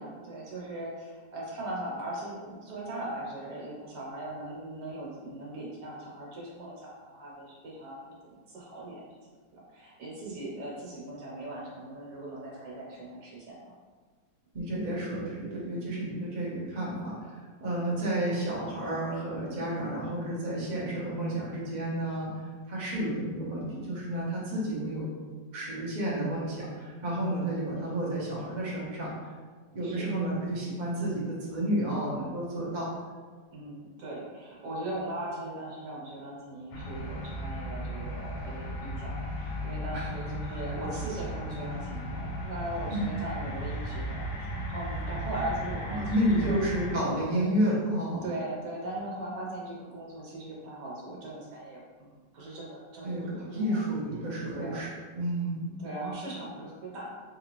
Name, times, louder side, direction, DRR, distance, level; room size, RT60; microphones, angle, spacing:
voice 1, 0.0-8.0 8.5-9.0 9.5-13.7 29.8-30.1 33.5-46.6 47.3-47.6 48.2-53.8 54.5-54.9 55.8-57.2, right 1 dB, 75° right, -4 dB, 1.5 m, -39 dB
voice 2, 14.5-17.2 17.6-22.3 22.7-25.1 25.5-29.1 29.7-32.9 39.9-40.1 42.9-43.0 46.1-48.3 53.0-53.2 53.5-54.9 55.1-55.8, right 1 dB, 40° right, -6 dB, 0.7 m, -31 dB
sound 1, 36.7-47.0, equal, 85° left, 1.3 m, -36 dB
3.7 x 2.5 x 2.9 m, 1.5 s
omnidirectional pair, 1.9 m